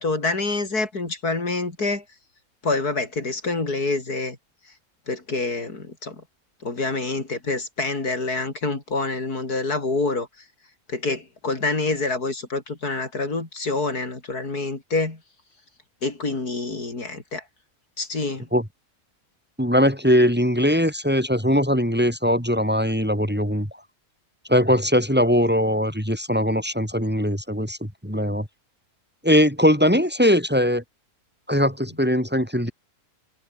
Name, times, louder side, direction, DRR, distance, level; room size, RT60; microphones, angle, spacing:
voice 1, 0.0-2.0 2.6-4.4 5.1-6.2 6.6-10.3 10.9-15.2 16.0-17.4 18.0-18.5, left 3 dB, 85° left, 5.0 m, -26 dB
voice 2, 19.6-23.7 24.5-28.5 29.2-30.8 31.5-32.7, equal, 5° right, 5.7 m, -20 dB
omnidirectional pair, 1.6 m